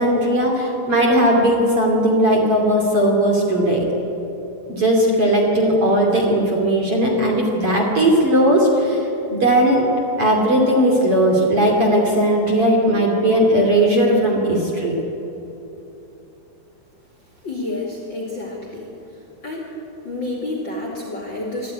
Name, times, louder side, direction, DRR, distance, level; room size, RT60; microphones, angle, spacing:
voice 1, 0.0-3.8 4.7-9.0 9.3-9.9 10.2-14.9, right 1 dB, 40° right, -1 dB, 3.1 m, -17 dB
voice 2, 17.4-18.9 19.4-19.7 20.0-21.7, left 2 dB, 35° left, -1 dB, 2.5 m, -29 dB
23.0 x 13.5 x 9.4 m, 3.0 s
omnidirectional pair, 4.8 m